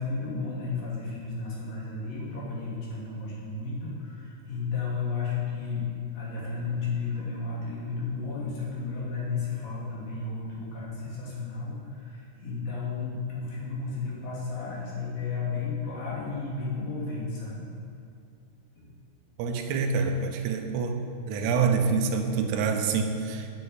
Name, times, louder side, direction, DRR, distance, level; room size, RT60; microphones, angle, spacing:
voice 1, 0.0-5.9 6.1-17.7 18.8-18.9, left 4 dB, 60° left, -6 dB, 4.1 m, -33 dB
voice 2, 19.4-21.0 21.3-23.5, right 5 dB, 85° right, 5 dB, 3.0 m, -26 dB
9.8 x 8.9 x 7.7 m, 2.5 s
omnidirectional pair, 4.8 m